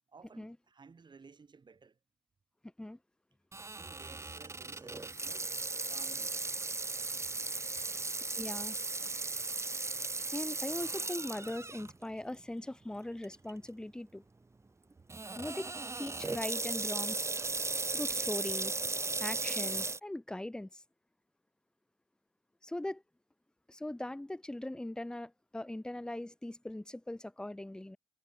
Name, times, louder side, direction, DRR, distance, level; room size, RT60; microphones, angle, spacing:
voice 1, 0.1-2.0 3.7-6.8 7.1-7.7, right 5 dB, 40° right, 3.4 m, -58 dB
Water tap faucet / Sink (filling or washing), 3.5-11.9 12.4-12.5 13.2-13.5 15.1-20.0, right 3 dB, 25° right, 1.2 m, -36 dB
voice 2, 8.4-8.8 10.3-14.2 15.4-15.7 16.0-17.3 17.9-18.8 19.2-20.8 22.6-23.0 23.7-28.0, left 1 dB, 5° left, 0.6 m, -40 dB
hypercardioid pair, 50°, 12 cm